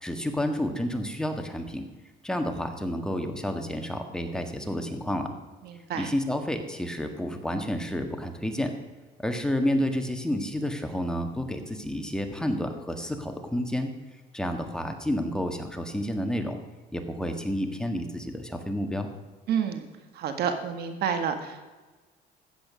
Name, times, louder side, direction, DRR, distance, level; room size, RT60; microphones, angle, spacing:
voice 1, 0.0-1.9 2.2-5.3 5.9-8.7 9.2-13.9 14.3-16.6 16.9-19.1, equal, 5° left, 5 dB, 1.6 m, -30 dB
voice 2, 5.6-6.1 19.5-19.8 20.1-21.7, right 7 dB, 70° right, 7 dB, 1.6 m, -29 dB
14.0 x 8.9 x 6.3 m, 1.3 s
cardioid pair, 110°, 17 cm